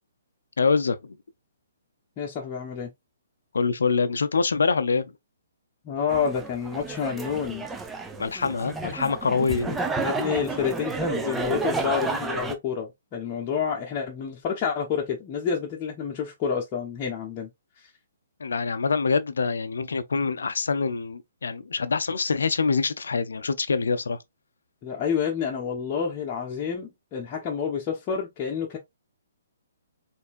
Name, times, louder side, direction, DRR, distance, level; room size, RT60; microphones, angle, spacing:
voice 1, 0.6-1.1 3.5-5.1 8.2-9.8 18.4-24.2, left 4 dB, 75° left, 0.5 m, -25 dB
voice 2, 2.2-2.9 5.8-7.7 10.0-17.5 24.8-28.8, left 7 dB, 30° left, 1.1 m, -29 dB
sound 1, 6.1-12.6, right 3 dB, 10° right, 0.6 m, -31 dB
4.3 x 3.4 x 2.5 m
figure-of-eight pair, 130°, 0 cm